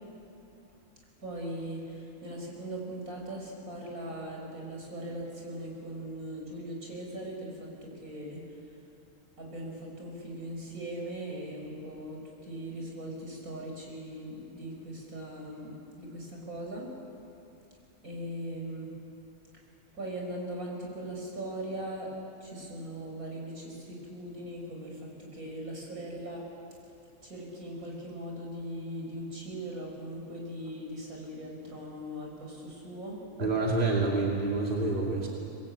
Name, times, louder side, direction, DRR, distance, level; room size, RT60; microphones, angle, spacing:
voice 1, 1.2-8.6 9.4-16.9 18.0-18.9 19.9-22.1 22.4-26.8 27.2-33.2, right 1 dB, 75° right, -1 dB, 5.9 m, -40 dB
voice 2, 33.4-35.3, right 3 dB, 35° right, -2 dB, 2.7 m, -27 dB
25.5 x 21.0 x 8.7 m, 2.7 s
omnidirectional pair, 1.5 m